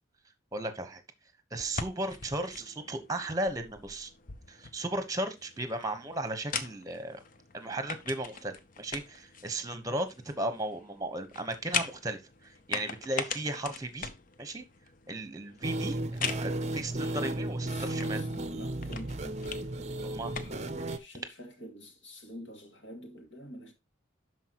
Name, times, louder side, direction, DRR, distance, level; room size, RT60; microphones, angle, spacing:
voice 1, 0.5-1.0 1.5-4.1 4.5-7.2 7.5-14.1 14.4-14.6 15.1-18.2 20.0-20.3, right 1 dB, 15° right, 1.1 m, -35 dB
sound 1, 1.5-21.0, left 6 dB, 45° left, 0.6 m, -42 dB
sound 2, 15.6-21.0, right 1 dB, 35° right, 0.6 m, -34 dB
voice 2, 17.1-23.7, equal, 65° left, 2.4 m, -48 dB
12.0 x 4.7 x 3.0 m
head